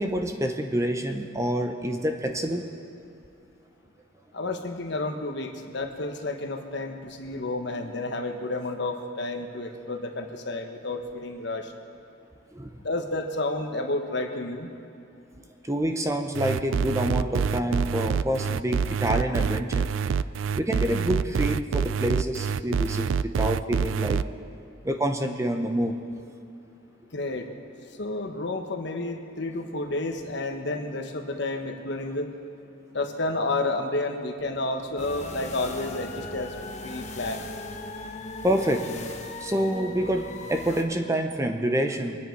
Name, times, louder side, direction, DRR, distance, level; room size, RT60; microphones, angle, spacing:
voice 1, 0.0-2.7 12.5-12.7 15.7-19.9 20.6-24.2 24.8-26.0 38.4-38.8 39.4-42.2, equal, 15° right, 5 dB, 0.7 m, -27 dB
voice 2, 4.3-11.7 12.8-14.7 27.1-27.5 28.0-32.3 32.9-36.5 36.8-37.4, left 2 dB, 55° left, 5 dB, 1.2 m, -31 dB
sound 1, 16.3-24.2, right 6 dB, 70° right, 0.3 m, -26 dB
sound 2, 35.0-40.8, left 2 dB, 35° left, 1.0 m, -38 dB
23.5 x 9.9 x 4.6 m, 2.7 s
head